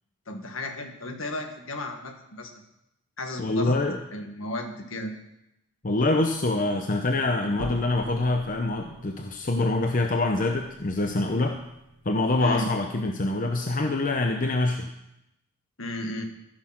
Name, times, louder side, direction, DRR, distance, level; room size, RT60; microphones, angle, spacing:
voice 1, 0.3-2.6 3.2-3.8 4.1-5.1 12.4-12.7 15.8-16.2, left 1 dB, 65° left, 4 dB, 1.7 m, -34 dB
voice 2, 3.4-4.0 5.8-11.6 12.0-14.9, left 2 dB, 40° left, 4 dB, 0.7 m, -25 dB
sound 1, 7.6-12.4, right 1 dB, 70° right, 2.1 m, -45 dB
14.5 x 6.4 x 5.9 m, 0.85 s
head